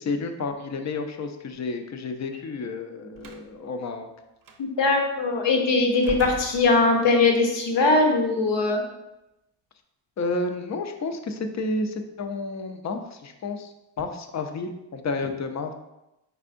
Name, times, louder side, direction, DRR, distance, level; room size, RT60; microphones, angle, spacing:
voice 1, 0.0-4.1 10.2-15.7, left 3 dB, 40° left, 6 dB, 0.5 m, -31 dB
Slam, 3.1-3.5 4.4-4.6 5.9-7.2, right 4 dB, 50° right, 0.6 m, -39 dB
voice 2, 4.6-8.8, left 3 dB, 70° left, 2 dB, 0.9 m, -21 dB
4.5 x 3.4 x 2.5 m, 0.93 s
cardioid pair, 85°, 45 cm